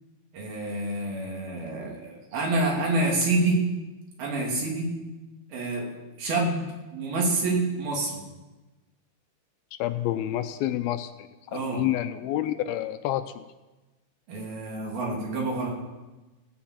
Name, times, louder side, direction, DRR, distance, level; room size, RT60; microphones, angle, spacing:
voice 1, 0.3-3.6 4.2-4.9 5.5-5.9 6.2-8.2 11.5-11.8 14.3-15.7, right 2 dB, 70° right, -2 dB, 4.7 m, -27 dB
voice 2, 9.8-13.4, left 13 dB, 80° left, 10 dB, 2.4 m, -29 dB
16.5 x 7.2 x 8.8 m, 1.1 s
omnidirectional pair, 4.5 m